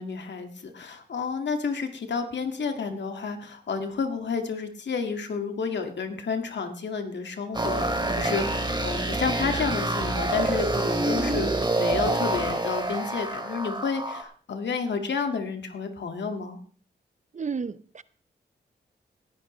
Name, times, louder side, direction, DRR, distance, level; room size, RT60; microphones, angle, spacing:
voice 1, 0.0-7.9 8.1-11.5 11.8-16.6, left 5 dB, 75° left, 1.8 m, -30 dB
sound 1, 7.5-14.2, right 2 dB, 25° right, 2.6 m, -27 dB
voice 2, 17.3-18.0, right 5 dB, 40° right, 0.6 m, -32 dB
19.0 x 11.0 x 3.1 m
cardioid pair, 70°, 18 cm